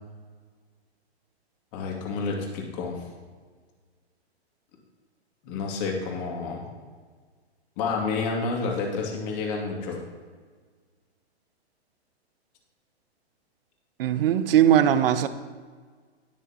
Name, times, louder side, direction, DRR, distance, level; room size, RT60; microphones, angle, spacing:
voice 1, 1.7-3.0 5.4-6.7 7.8-10.0, left 4 dB, 40° left, -1 dB, 2.6 m, -29 dB
voice 2, 14.0-15.3, right 10 dB, 55° right, 12 dB, 0.8 m, -20 dB
19.5 x 6.6 x 3.1 m, 1.5 s
hypercardioid pair, 145°, 33 cm